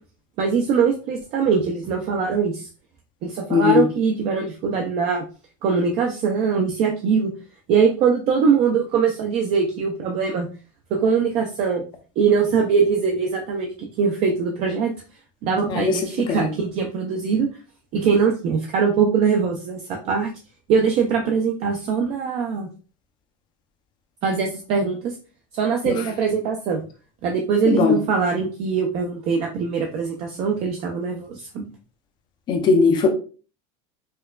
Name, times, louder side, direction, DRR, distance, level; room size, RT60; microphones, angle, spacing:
voice 1, 0.4-2.7 3.2-5.2 5.6-7.3 7.7-10.5 10.9-11.8 12.2-14.9 15.4-17.5 17.9-20.3 20.7-22.7 24.2-25.1 25.5-26.8 27.2-31.7, right 6 dB, 35° right, 0.4 m, -22 dB
voice 2, 3.5-3.8 15.8-16.0 16.3-16.4 25.9-26.0 27.7-27.9 32.5-33.1, left 5 dB, 25° left, 0.5 m, -18 dB
4.3 x 2.3 x 2.2 m
cardioid pair, 170°, 17 cm